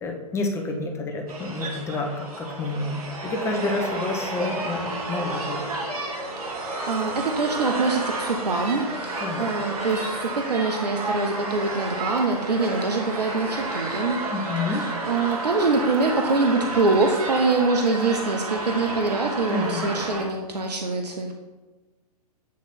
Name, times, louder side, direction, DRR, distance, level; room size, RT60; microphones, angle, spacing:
voice 1, 0.0-5.7 9.2-9.5 14.3-14.9 19.5-19.9, left 2 dB, 15° left, 2 dB, 0.9 m, -29 dB
sound 1, 1.3-20.2, right 2 dB, 65° right, 1.7 m, -31 dB
voice 2, 6.4-14.2 15.1-21.4, right 3 dB, 90° right, 3 dB, 0.7 m, -24 dB
8.4 x 3.0 x 4.3 m, 1.2 s
hypercardioid pair, 120°, 20 cm